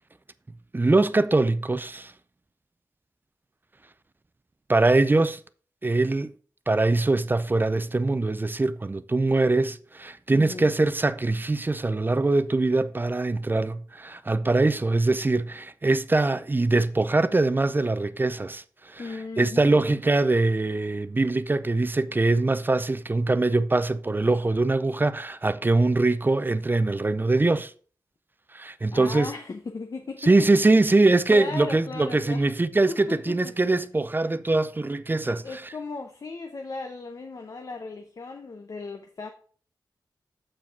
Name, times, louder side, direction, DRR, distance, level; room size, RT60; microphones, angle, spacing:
voice 1, 0.7-2.1 4.7-5.4 5.8-6.3 6.7-19.1 19.4-27.7 28.5-29.3 30.2-35.6, right 2 dB, 25° right, 0.4 m, -23 dB
voice 2, 10.3-10.7 19.0-19.8 28.9-30.5 30.7-32.4 32.9-33.6 35.2-39.3, left 3 dB, 55° left, 0.7 m, -37 dB
7.5 x 4.7 x 4.6 m
wide cardioid pair, 65°, 7 cm